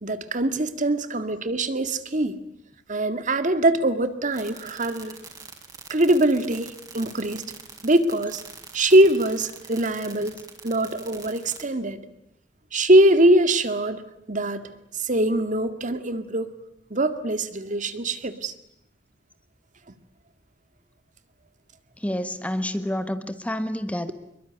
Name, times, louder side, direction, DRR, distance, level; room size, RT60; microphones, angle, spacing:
voice 1, 0.0-2.4 2.9-5.1 5.9-7.4 7.8-8.4 8.7-10.4 10.6-12.0 12.7-14.0 14.3-14.6 15.0-16.5 16.9-18.5, right 1 dB, 45° right, 10 dB, 1.9 m, -22 dB
sound 1, 4.3-11.6, right 4 dB, 20° right, 5.4 m, -43 dB
voice 2, 22.0-24.1, left 1 dB, 10° left, 10 dB, 1.3 m, -28 dB
27.0 x 22.5 x 9.7 m, 0.76 s
head